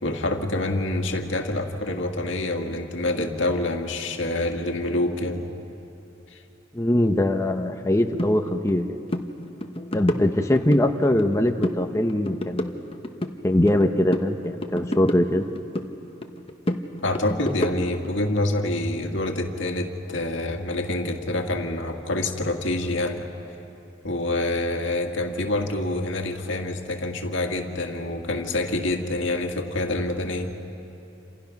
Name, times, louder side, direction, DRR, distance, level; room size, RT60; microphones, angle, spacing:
voice 1, 0.0-5.5 6.3-6.4 17.0-23.3 24.0-30.5, left 2 dB, 85° left, 3 dB, 2.0 m, -26 dB
voice 2, 6.7-9.0 9.9-12.8 13.4-15.5, left 1 dB, 15° left, 4 dB, 0.8 m, -22 dB
sound 1, 8.2-8.3 8.7-8.8 9.1-9.3 9.6-10.8 11.2-11.8 12.1-13.8 14.1-15.9 16.2-18.1, left 1 dB, 30° left, 1.1 m, -29 dB
28.5 x 27.5 x 5.9 m, 3.0 s
head